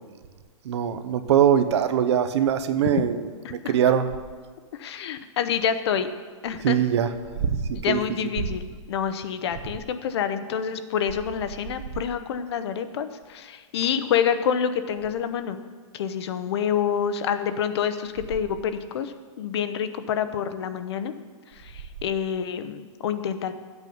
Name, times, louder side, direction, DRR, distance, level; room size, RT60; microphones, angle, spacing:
voice 1, 0.6-4.1 6.6-7.1 7.4-7.6 7.9-8.0, right 9 dB, 60° right, 10 dB, 0.9 m, -22 dB
voice 2, 4.8-6.1 6.4-6.8 7.7-15.6 15.9-21.1 22.0-23.5, left 8 dB, 55° left, 10 dB, 0.9 m, -27 dB
14.0 x 8.2 x 5.4 m, 1.5 s
hypercardioid pair, 165°, 16 cm